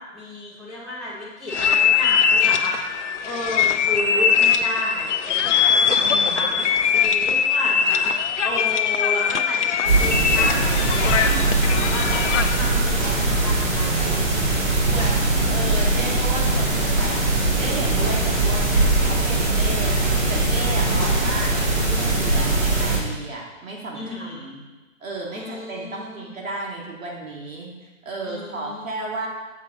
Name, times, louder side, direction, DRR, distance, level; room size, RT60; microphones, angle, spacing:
voice 1, 0.1-15.7 20.8-21.1 23.9-24.5 25.3-26.4 28.2-28.9, left 1 dB, ahead, -11 dB, 0.6 m, -33 dB
sound 1, 1.5-12.7, left 7 dB, 60° left, 0.7 m, -21 dB
voice 2, 6.0-6.5 14.9-15.2 15.5-24.6 25.0-29.3, right 2 dB, 75° right, -2 dB, 2.6 m, -33 dB
sound 2, 9.8-23.0, right 2 dB, 45° right, 2.3 m, -21 dB
7.1 x 7.1 x 3.9 m, 1.2 s
hypercardioid pair, 160°, 41 cm